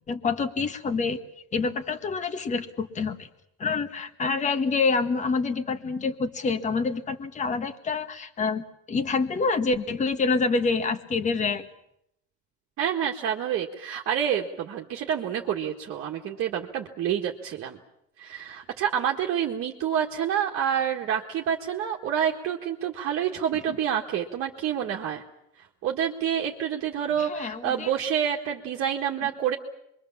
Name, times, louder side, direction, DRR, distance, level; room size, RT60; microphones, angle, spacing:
voice 1, 0.1-1.2 1.5-3.3 3.6-11.7 27.2-27.9, left 4 dB, 25° left, 9 dB, 1.6 m, -27 dB
voice 2, 12.8-17.8 18.2-25.2 25.8-29.6, right 9 dB, 45° right, 0 dB, 1.7 m, -28 dB
26.5 x 23.0 x 7.3 m, 0.79 s
cardioid pair, 155°, 30 cm